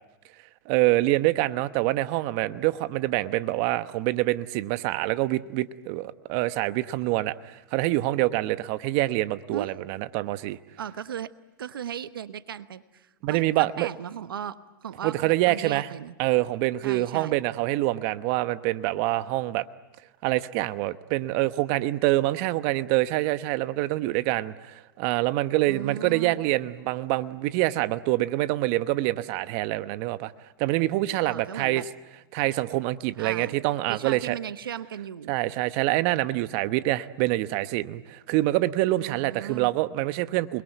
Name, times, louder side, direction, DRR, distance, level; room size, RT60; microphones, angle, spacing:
voice 1, 0.7-10.6 13.2-13.9 15.0-15.9 16.2-19.6 20.2-30.3 30.6-31.8 32.3-34.4 35.3-40.6, right 17 dB, 50° right, 13 dB, 1.0 m, -26 dB
voice 2, 10.8-11.3 11.6-16.1 16.8-17.4 25.7-26.4 31.2-31.9 33.2-33.6 33.9-35.3 39.0-39.7, right 9 dB, 85° right, 13 dB, 1.0 m, -37 dB
28.5 x 22.0 x 9.2 m, 1.1 s
hypercardioid pair, 110°, 12 cm